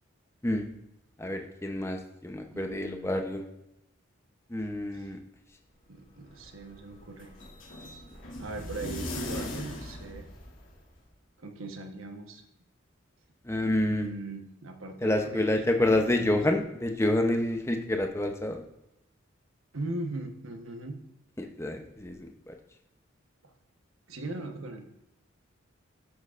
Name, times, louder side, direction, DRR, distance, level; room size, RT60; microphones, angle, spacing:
voice 1, 1.2-3.4 4.5-5.2 13.4-14.1 15.0-18.6 21.4-22.5, left 1 dB, 15° left, 4 dB, 0.7 m, -28 dB
voice 2, 2.5-3.2 4.9-5.1 5.9-7.3 8.4-10.2 11.4-12.4 13.9-15.6 15.9-16.4 19.7-21.0 23.4-23.5 24.1-24.9, right 2 dB, 90° right, 5 dB, 1.2 m, -39 dB
sound 1, 5.9-11.0, left 1 dB, 85° left, 2.5 m, -40 dB
16.0 x 6.2 x 2.5 m, 0.86 s
head